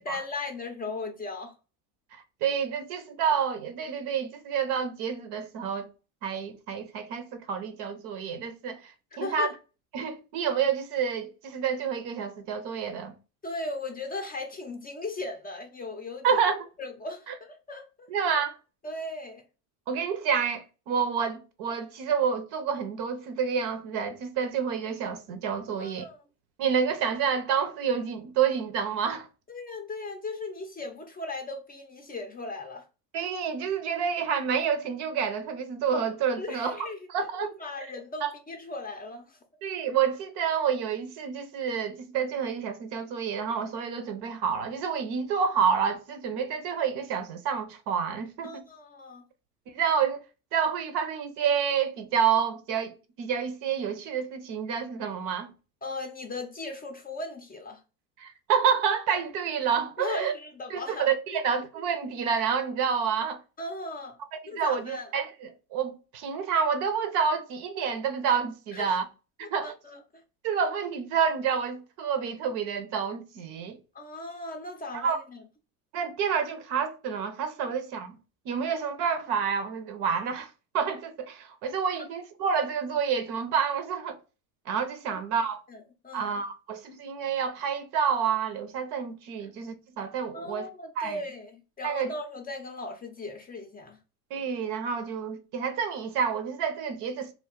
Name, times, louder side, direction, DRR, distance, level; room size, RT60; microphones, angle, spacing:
voice 1, 0.0-1.5 9.2-9.5 13.4-16.4 16.8-18.1 18.8-19.4 25.7-26.2 29.5-32.8 36.4-37.0 37.4-39.4 48.4-49.2 55.8-57.8 60.0-61.4 63.6-64.2 64.5-65.1 68.7-69.0 69.4-70.0 73.9-75.4 77.6-77.7 85.1-85.2 85.7-86.3 89.4-89.5 90.3-94.0, left 2 dB, 20° left, 0.5 m, -37 dB
voice 2, 2.1-5.9 6.2-8.8 9.2-9.5 9.9-13.1 16.2-16.6 18.1-18.6 19.9-26.0 26.6-29.3 33.1-36.9 37.1-37.5 37.8-37.9 38.2-38.3 39.6-48.7 49.7-50.2 50.5-55.5 58.2-60.3 60.7-63.4 64.3-69.1 69.5-69.7 70.4-73.8 74.9-75.2 75.9-78.1 78.5-84.2 84.7-85.6 86.1-90.7 91.0-91.2 91.8-92.1 94.3-97.3, right 7 dB, 55° right, 0.7 m, -29 dB
2.3 x 2.2 x 3.6 m
hypercardioid pair, 90°, 48 cm